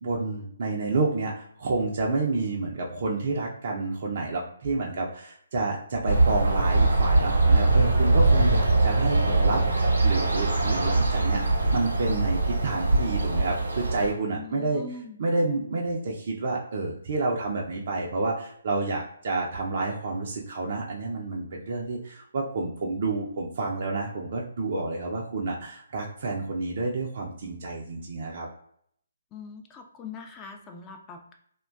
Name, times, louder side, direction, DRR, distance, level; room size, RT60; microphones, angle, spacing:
voice 1, 0.0-14.8 15.2-28.5, right 3 dB, 50° right, -2 dB, 0.4 m, -29 dB
sound 1, 6.1-14.1, right 2 dB, 80° right, 0.7 m, -22 dB
voice 2, 14.3-15.2 29.3-31.3, left 4 dB, 20° left, 4 dB, 0.4 m, -42 dB
2.4 x 2.2 x 2.3 m, 0.65 s
figure-of-eight pair, 140°, 0 cm